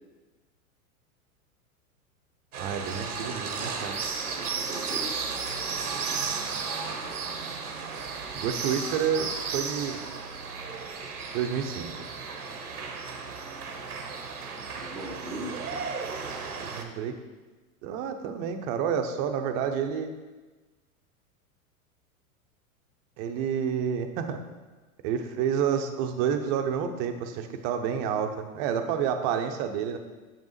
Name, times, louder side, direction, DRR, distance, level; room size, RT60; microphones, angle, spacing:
sound 1, 2.5-16.8, right 5 dB, 90° right, 0.8 m, -34 dB
voice 1, 2.6-4.0 8.4-10.0 11.3-11.9 16.6-17.1 17.8-20.1 23.2-24.4 25.0-30.0, right 8 dB, 45° right, 7 dB, 0.8 m, -29 dB
voice 2, 4.3-5.2 14.7-15.8 16.2-16.4, right 1 dB, 5° right, -6 dB, 1.4 m, -40 dB
7.1 x 5.3 x 3.1 m, 1.2 s
hypercardioid pair, 100°, 43 cm